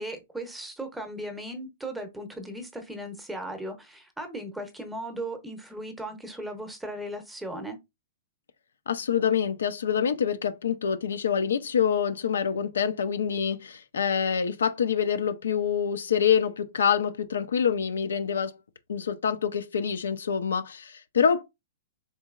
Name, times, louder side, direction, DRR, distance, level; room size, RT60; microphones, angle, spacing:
voice 1, 0.0-7.8, right 1 dB, 5° right, 0.7 m, -37 dB
voice 2, 8.9-18.5 18.9-21.4, left 7 dB, 90° left, 0.5 m, -26 dB
3.9 x 2.9 x 2.4 m
hypercardioid pair, 145°, 0 cm